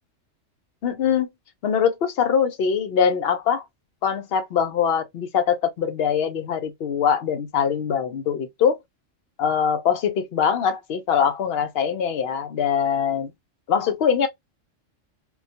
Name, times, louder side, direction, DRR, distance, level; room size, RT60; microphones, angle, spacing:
voice 1, 0.8-1.3 1.6-3.6 4.0-8.8 9.4-13.3 13.7-14.3, left 7 dB, 60° left, 0.7 m, -22 dB
2.3 x 2.2 x 2.6 m
omnidirectional pair, 1.3 m